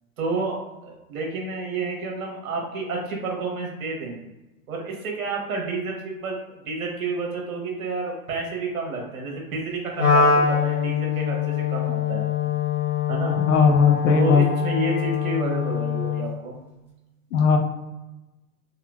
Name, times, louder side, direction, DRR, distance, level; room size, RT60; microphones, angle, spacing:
voice 1, 0.2-4.3 4.7-6.3 6.6-12.3 13.1-13.4 14.1-16.5, right 3 dB, 65° right, 0 dB, 1.2 m, -30 dB
Wind instrument woodwind instrument, 10.0-16.3, left 7 dB, 5° right, 0.9 m, -23 dB
voice 2, 13.5-14.4 17.3-17.6, left 5 dB, 60° left, 3 dB, 0.6 m, -17 dB
3.7 x 2.2 x 2.3 m, 1.0 s
hypercardioid pair, 150°, 45 cm